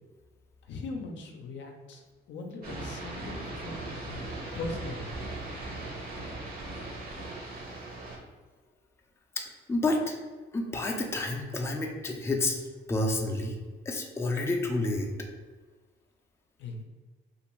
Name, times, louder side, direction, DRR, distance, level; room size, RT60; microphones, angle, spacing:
voice 1, 0.6-4.2 4.5-5.1 16.6-16.8, left 3 dB, 65° left, 3 dB, 0.5 m, -40 dB
sound 1, 2.6-8.2, right 2 dB, 50° right, 0.8 m, -38 dB
voice 2, 9.7-10.1 10.5-12.6 12.9-13.6 13.9-15.1, left 2 dB, 15° left, 1 dB, 0.4 m, -29 dB
2.5 x 2.4 x 3.0 m, 1.4 s
cardioid pair, 90°, 20 cm